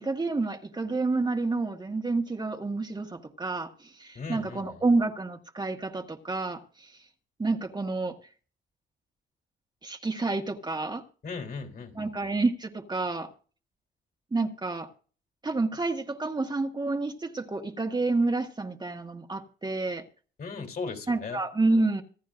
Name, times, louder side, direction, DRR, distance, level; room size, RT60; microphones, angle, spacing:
voice 1, 0.0-6.9 7.4-8.2 9.8-11.0 11.9-13.3 14.3-14.9 15.4-20.0 21.1-22.0, right 3 dB, 20° right, 1.4 m, -29 dB
voice 2, 4.2-4.9 11.2-12.1 20.4-21.4, left 4 dB, 50° left, 3.5 m, -37 dB
26.0 x 9.3 x 2.5 m
cardioid pair, 90°, 20 cm